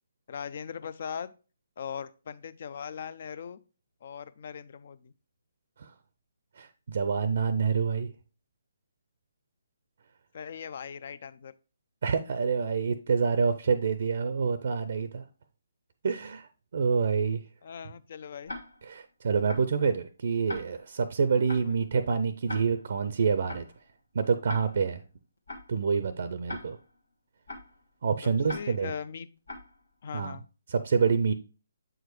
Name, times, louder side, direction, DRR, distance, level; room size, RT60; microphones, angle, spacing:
voice 1, 0.3-1.3 1.8-3.6 4.0-5.1 10.3-11.5 17.6-18.5 21.6-21.7 28.2-29.3 30.0-30.5, left 7 dB, 50° left, 0.5 m, -39 dB
voice 2, 6.6-8.1 12.0-15.2 16.0-16.5 16.7-17.4 18.8-23.7 24.1-25.0 25.7-26.8 28.0-28.9 30.1-30.4 30.7-31.3, right 5 dB, 55° right, 0.5 m, -27 dB
Tick-tock, 18.5-19.0 19.5-19.8 20.5-21.0 21.5-21.8 22.5-23.0 23.5-23.8 24.5-25.0 25.5-25.8 26.5-27.0 27.5-27.8 28.5-29.0 29.5-29.8, left 2 dB, 75° left, 1.2 m, -41 dB
7.6 x 4.8 x 3.1 m
figure-of-eight pair, 140°, 0 cm